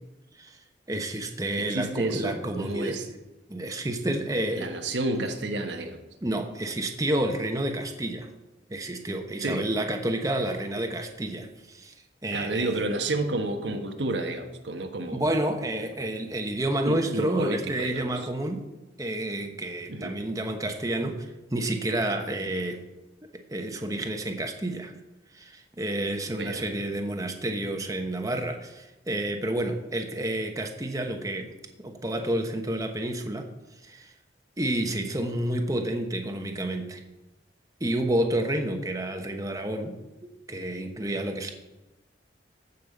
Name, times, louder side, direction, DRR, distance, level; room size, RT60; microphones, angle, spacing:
voice 1, 0.9-3.0 3.5-4.7 5.2-5.3 6.2-8.3 8.7-11.9 12.2-12.7 15.1-18.6 19.0-22.8 23.5-24.9 25.3-33.5 33.8-34.1 34.6-37.0 37.8-40.0 40.2-41.5, right 1 dB, 20° right, 4 dB, 1.1 m, -30 dB
voice 2, 1.6-3.0 4.6-6.0 9.4-9.7 12.3-15.2 15.8-15.9 16.8-18.0 19.9-20.1 26.3-26.6, right 2 dB, 90° right, 5 dB, 1.3 m, -30 dB
15.0 x 5.5 x 6.7 m, 1.0 s
head